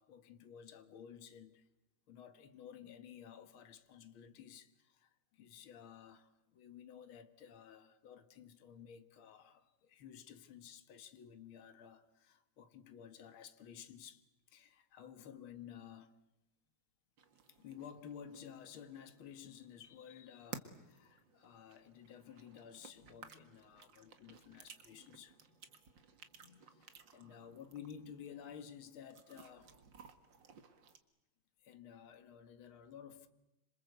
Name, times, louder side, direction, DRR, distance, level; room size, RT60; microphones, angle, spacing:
voice 1, 0.0-1.7 2.1-16.1 17.5-25.9 26.2-29.7 31.6-33.3, left 8 dB, 65° left, 1.3 m, -54 dB
sound 1, 17.2-31.0, right 6 dB, 45° right, 1.6 m, -57 dB
27.0 x 27.0 x 8.1 m
omnidirectional pair, 4.5 m